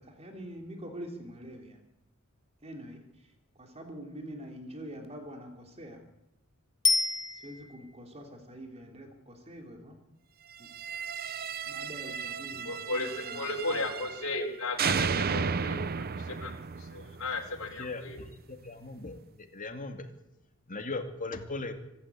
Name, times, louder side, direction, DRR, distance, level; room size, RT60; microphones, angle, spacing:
voice 1, 0.0-1.8 2.6-6.0 7.3-10.0 10.6-10.7 11.7-14.0, equal, 30° right, 3 dB, 3.2 m, -45 dB
Bicycle bell, 6.8-8.0 17.0-17.1, left 3 dB, 20° left, 1.1 m, -28 dB
sound 1, 10.6-14.5 14.8-17.8, right 6 dB, 45° right, 0.7 m, -34 dB
voice 2, 12.7-13.1 13.4-15.8 16.3-16.5 16.9-18.2, left 3 dB, 65° left, 0 dB, 4.3 m, -34 dB
voice 3, 17.8-18.3 18.6-19.2 19.5-20.1 20.7-21.7, left 3 dB, 40° left, 6 dB, 2.4 m, -38 dB
25.0 x 12.5 x 8.5 m, 0.86 s
head